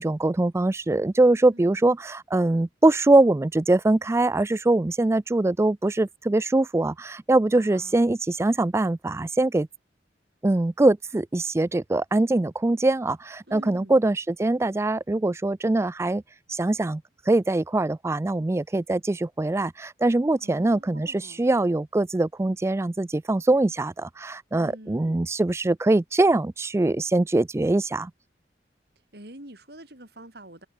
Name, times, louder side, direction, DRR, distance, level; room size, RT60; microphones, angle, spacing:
voice 1, 0.0-9.7 10.4-16.2 16.5-28.1, right 2 dB, 15° right, 0.3 m, -23 dB
voice 2, 7.5-8.0 13.5-14.0 20.4-21.5 24.5-25.3 29.1-30.7, right 1 dB, 65° right, 5.8 m, -46 dB
head